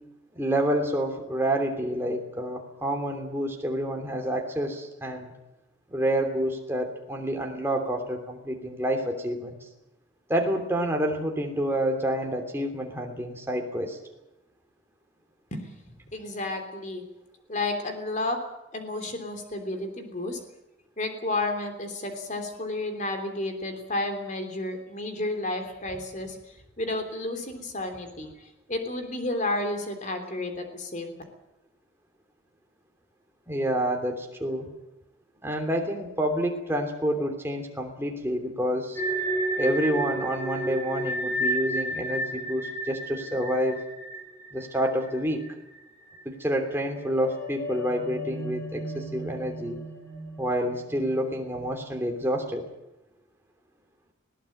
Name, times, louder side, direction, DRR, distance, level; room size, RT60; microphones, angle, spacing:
voice 1, 0.3-5.3 5.9-9.6 10.3-14.0 33.5-34.7 35.4-39.0 39.6-43.8 44.5-45.4 46.2-49.8 50.4-52.7, equal, 10° right, 2 dB, 3.0 m, -28 dB
voice 2, 15.5-17.1 17.5-18.4 18.7-20.4 21.0-31.1, left 2 dB, 35° left, 6 dB, 3.3 m, -32 dB
sound 1, 39.0-45.8 46.1-46.2 46.7-52.1, right 1 dB, 10° left, 3.3 m, -33 dB
20.0 x 17.5 x 8.8 m, 0.92 s
head